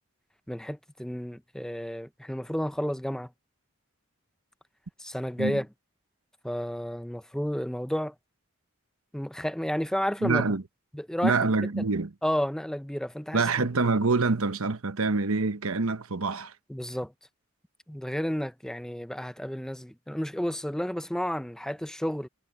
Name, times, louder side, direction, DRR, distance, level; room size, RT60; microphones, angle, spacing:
voice 1, 0.5-3.3 5.0-5.7 6.4-8.1 9.1-10.4 10.9-11.5 12.2-13.7 16.7-17.1 17.9-22.3, equal, 5° left, 0.5 m, -31 dB
voice 2, 10.2-10.6 11.2-12.1 13.3-16.5, right 3 dB, 85° right, 1.1 m, -26 dB
head